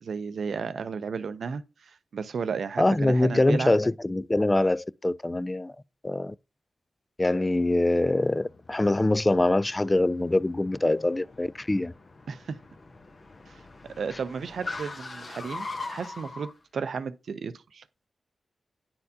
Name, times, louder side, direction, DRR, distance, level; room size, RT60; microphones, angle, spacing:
voice 1, 0.0-3.7 12.3-12.6 13.5-13.6 14.0-15.7 15.9-17.8, right 5 dB, 75° right, 0.5 m, -33 dB
voice 2, 2.8-5.7 6.0-6.3 7.2-11.9, left 2 dB, 25° left, 0.3 m, -24 dB
Car, 7.6-16.5, left 3 dB, 50° left, 0.9 m, -42 dB
9.5 x 4.3 x 2.7 m
supercardioid pair, 45°, 0 cm